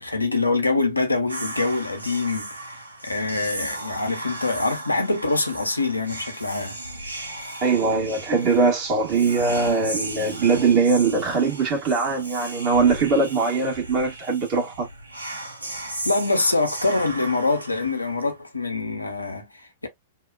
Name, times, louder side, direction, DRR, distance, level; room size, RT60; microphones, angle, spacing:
voice 1, 0.0-2.8 3.0-6.8 16.0-19.9, left 3 dB, 85° left, 0.6 m, -24 dB
Whispering, 1.3-18.4, right 1 dB, 85° right, 0.7 m, -36 dB
voice 2, 7.6-14.9, right 4 dB, 35° right, 1.4 m, -21 dB
2.8 x 2.1 x 2.4 m
figure-of-eight pair, 100°, 0 cm